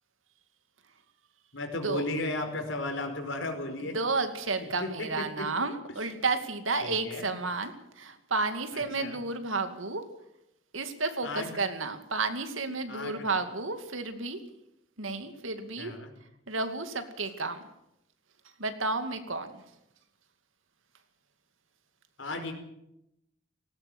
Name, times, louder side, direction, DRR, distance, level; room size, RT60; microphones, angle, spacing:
voice 1, 1.5-4.0 4.6-5.5 6.8-7.3 8.7-9.2 11.2-11.5 12.9-13.3 15.8-16.1 22.2-22.5, left 2 dB, 70° left, 5 dB, 4.8 m, -35 dB
voice 2, 3.9-10.0 10.7-14.4 15.0-15.9 16.5-17.6 18.6-19.6, right 3 dB, 80° right, 8 dB, 2.4 m, -32 dB
18.5 x 18.0 x 8.0 m, 0.83 s
head